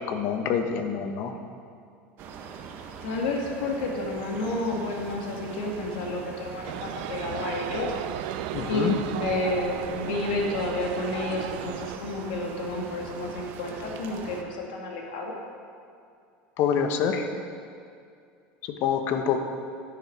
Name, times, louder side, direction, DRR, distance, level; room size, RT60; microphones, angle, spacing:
voice 1, 0.1-1.3 8.5-9.0 16.6-17.3 18.7-19.4, left 7 dB, 55° left, 6 dB, 1.1 m, -26 dB
sound 1, 2.2-14.4, right 6 dB, 50° right, 1.0 m, -42 dB
voice 2, 3.0-7.9 8.7-15.4, left 2 dB, 85° left, -1 dB, 2.2 m, -30 dB
sound 2, 6.6-12.0, right 13 dB, 75° right, 0.4 m, -35 dB
10.5 x 10.5 x 4.7 m, 2.3 s
supercardioid pair, 135°, 5 cm